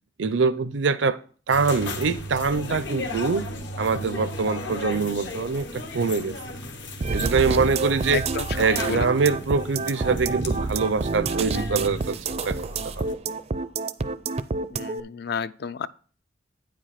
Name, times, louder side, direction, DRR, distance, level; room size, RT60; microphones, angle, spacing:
voice 1, 0.2-1.2 1.5-3.5 3.8-6.4 7.1-8.3 8.6-12.6 13.0-13.1, right 4 dB, 80° right, 0.6 m, -24 dB
sound 1, 1.5-13.1, left 1 dB, 75° left, 1.3 m, -35 dB
sound 2, 7.0-15.0, right 4 dB, 35° right, 0.4 m, -28 dB
voice 2, 8.1-8.5 8.8-9.1 14.7-15.9, left 6 dB, 60° left, 0.4 m, -31 dB
9.2 x 5.1 x 5.7 m
head